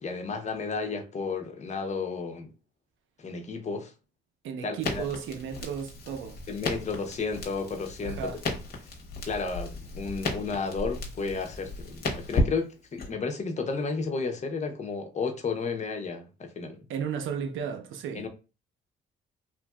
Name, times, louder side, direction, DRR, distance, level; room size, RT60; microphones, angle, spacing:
voice 1, 0.0-2.5 3.2-3.9 4.6-5.0 6.5-8.3 9.2-16.8 18.1-18.3, left 4 dB, 35° left, 0.7 m, -32 dB
voice 2, 4.4-6.4 8.0-8.4 16.9-18.3, right 7 dB, 80° right, 0.5 m, -34 dB
Crackle, 4.8-13.1, left 2 dB, 50° left, 0.9 m, -34 dB
3.0 x 2.5 x 2.3 m
cardioid pair, 90°, 20 cm